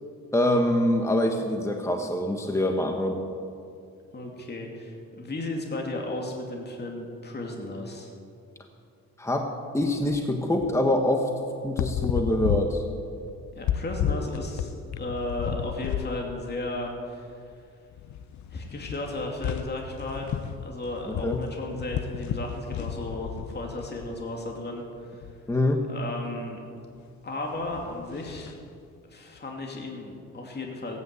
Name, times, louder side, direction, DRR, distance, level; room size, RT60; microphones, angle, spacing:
voice 1, 0.3-3.2 9.2-9.5 9.7-11.3 11.6-12.8 21.2-21.4 25.5-25.8, left 1 dB, 10° left, 3 dB, 1.4 m, -24 dB
voice 2, 4.1-8.1 13.6-17.3 18.5-25.3 25.9-26.6 27.2-28.5 29.1-31.0, left 2 dB, 35° left, 0 dB, 2.6 m, -34 dB
sound 1, 9.9-10.2 10.6-10.8 11.6-16.2 16.5-16.7 17.5-17.6 17.9-24.2 25.0-25.4 27.5-28.6, left 9 dB, 70° left, 0.7 m, -33 dB
17.0 x 9.6 x 8.3 m, 2.4 s
cardioid pair, 90°, 30 cm